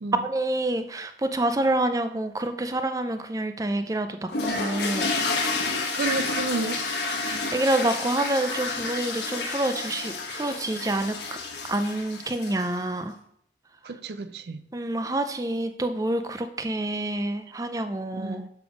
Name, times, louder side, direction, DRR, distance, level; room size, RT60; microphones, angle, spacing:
voice 1, 0.2-5.1 7.2-11.2 11.7-13.2 14.7-18.4, right 1 dB, 20° right, 0.5 m, -27 dB
sound 1, 4.3-12.8, left 3 dB, 80° left, 1.1 m, -30 dB
voice 2, 5.9-6.8 13.8-14.7 18.1-18.5, right 3 dB, 70° right, 0.5 m, -31 dB
6.8 x 5.1 x 5.1 m
head